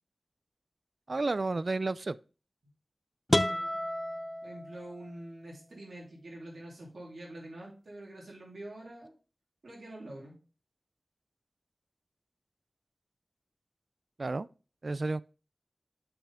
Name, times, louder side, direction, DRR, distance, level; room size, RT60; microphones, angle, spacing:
voice 1, 1.1-2.2 14.2-14.5 14.8-15.2, right 3 dB, 60° right, 0.3 m, -31 dB
sound 1, 3.3-5.2, left 1 dB, 25° left, 0.5 m, -31 dB
voice 2, 3.5-3.8 4.4-9.1 9.6-10.3, right 1 dB, 85° right, 3.0 m, -46 dB
6.8 x 5.7 x 3.5 m
wide cardioid pair, 55°, 0 cm